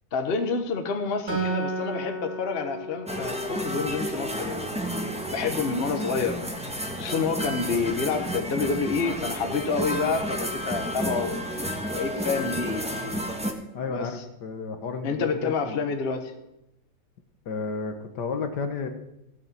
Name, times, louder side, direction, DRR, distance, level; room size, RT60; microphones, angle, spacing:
voice 1, 0.1-5.0 5.3-6.4 7.0-11.4 11.9-12.9 13.9-14.1 15.0-16.3, left 5 dB, 35° left, 6 dB, 1.2 m, -28 dB
Acoustic guitar, 1.3-4.7, right 2 dB, 40° right, 3.2 m, -33 dB
sound 1, 3.1-13.5, equal, 5° right, 1.0 m, -31 dB
voice 2, 13.7-15.8 17.4-18.9, left 4 dB, 65° left, 7 dB, 1.6 m, -32 dB
15.0 x 6.5 x 7.4 m, 0.88 s
omnidirectional pair, 2.0 m